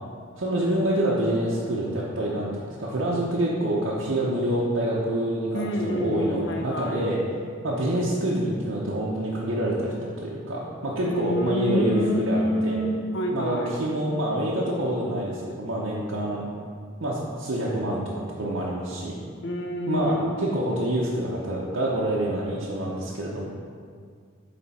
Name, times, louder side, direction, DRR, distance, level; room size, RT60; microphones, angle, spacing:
voice 1, 0.4-2.5 2.8-7.2 7.6-12.8 13.3-16.5 17.0-19.1 19.9-23.4, right 1 dB, 65° right, -6 dB, 0.8 m, -27 dB
voice 2, 5.5-7.1 11.1-13.7 19.4-20.6, equal, 65° left, 2 dB, 0.8 m, -27 dB
8.5 x 3.3 x 4.2 m, 2.1 s
head